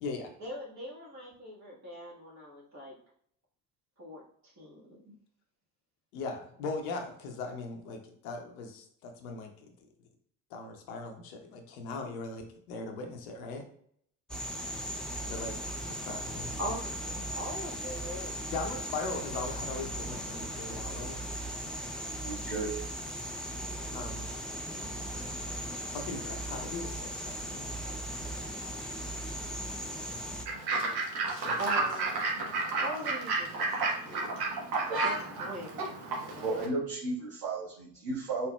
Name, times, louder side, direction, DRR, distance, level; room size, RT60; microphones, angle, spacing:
voice 1, 0.4-2.9 4.0-4.2 4.6-5.0 16.6-18.3 31.6-32.5 32.8-34.4 35.0-35.1 35.4-35.8 36.3-36.6, right 1 dB, 35° right, -5 dB, 1.5 m, -41 dB
voice 2, 6.1-9.5 10.5-13.7 15.2-15.6 15.9-16.6 18.5-21.3 23.9-24.3 25.9-27.7 31.3-31.6, left 3 dB, 65° left, 4 dB, 0.8 m, -39 dB
sound 1, 14.3-30.4, right 1 dB, ahead, 0.3 m, -38 dB
voice 3, 22.2-22.7 36.4-38.5, right 3 dB, 75° right, -10 dB, 1.5 m, -34 dB
Fowl / Bird, 30.5-36.7, right 3 dB, 50° right, 1.2 m, -32 dB
4.3 x 3.7 x 2.2 m, 0.64 s
figure-of-eight pair, 55°, 48 cm